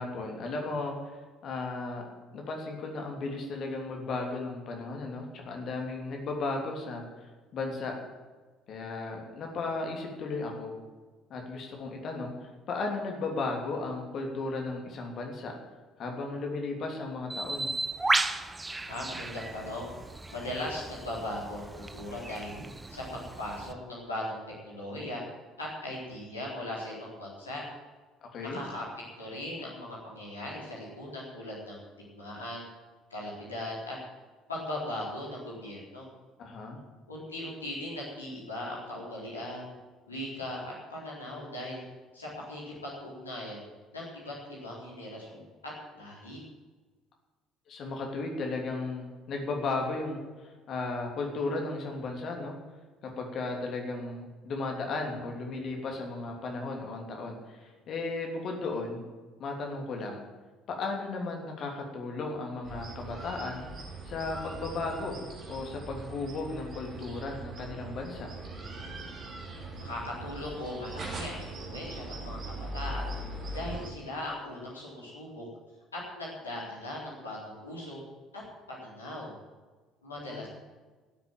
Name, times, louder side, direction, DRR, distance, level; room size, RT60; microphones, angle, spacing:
voice 1, 0.0-2.0 2.3-7.9 8.7-10.7 11.3-15.5 16.0-17.7 28.3-28.6 36.4-36.8 47.7-52.6 53.0-59.0 59.4-60.2 60.7-63.6 64.0-65.2 65.5-68.3 80.3-80.5, left 3 dB, 45° left, 1 dB, 3.1 m, -35 dB
Bird, 17.3-23.7, right 2 dB, 15° right, 0.9 m, -34 dB
voice 2, 18.9-19.9 20.3-22.6 22.9-24.4 24.6-25.2 25.6-27.6 28.5-28.8 29.2-31.8 32.1-32.7 33.1-34.0 34.5-36.1 37.1-39.7 40.1-41.8 42.1-43.6 43.9-45.4 45.9-46.4 69.8-73.1 73.5-75.5 75.9-78.0 78.3-78.4 78.7-79.3 80.0-80.5, left 1 dB, 80° left, -5 dB, 4.0 m, -39 dB
sound 1, 62.6-73.9, right 2 dB, 40° right, 3.1 m, -40 dB
13.0 x 8.0 x 9.2 m, 1.3 s
figure-of-eight pair, 55°, 0 cm